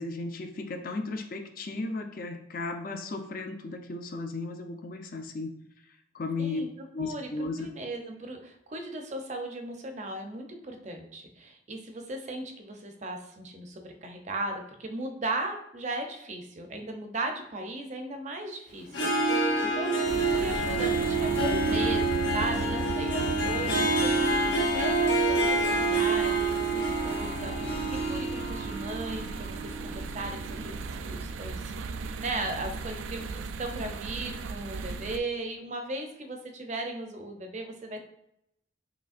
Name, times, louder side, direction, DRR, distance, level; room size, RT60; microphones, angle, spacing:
voice 1, 0.0-5.6 6.1-6.6 6.9-7.7, left 3 dB, 50° left, 6 dB, 0.4 m, -35 dB
voice 2, 7.0-31.7 32.0-38.1, right 2 dB, 40° right, 4 dB, 0.6 m, -37 dB
Harp, 18.9-30.8, right 2 dB, 85° left, 1.0 m, -27 dB
sound 1, 20.1-35.2, right 4 dB, 85° right, 0.3 m, -37 dB
5.0 x 3.2 x 2.5 m, 0.79 s
head